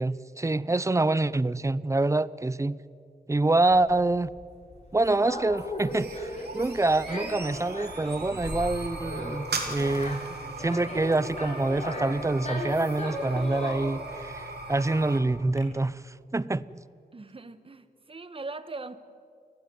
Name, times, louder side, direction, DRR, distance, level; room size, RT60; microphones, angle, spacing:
voice 1, 0.0-2.8 3.3-4.3 4.9-16.6, right 2 dB, 20° right, 0.6 m, -26 dB
Conversation, 3.7-15.6, left 1 dB, 40° left, 7.1 m, -37 dB
sound 1, 5.7-15.2, right 2 dB, 85° right, 3.6 m, -39 dB
voice 2, 17.1-19.0, right 3 dB, 35° right, 1.4 m, -40 dB
30.0 x 16.5 x 9.5 m
wide cardioid pair, 120°, 16 cm